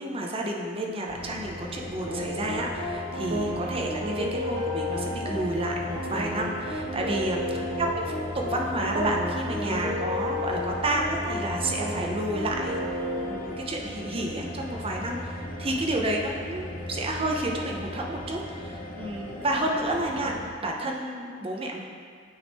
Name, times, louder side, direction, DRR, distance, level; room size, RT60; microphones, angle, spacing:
voice 1, 0.0-7.4 7.8-7.9 8.3-12.8 13.2-21.8, right 1 dB, 30° right, 0 dB, 0.7 m, -30 dB
sound 1, 1.1-20.5, left 1 dB, 45° left, 0.7 m, -37 dB
sound 2, 2.1-13.4, left 1 dB, 60° right, 1.1 m, -32 dB
8.9 x 3.6 x 4.1 m, 2.2 s
head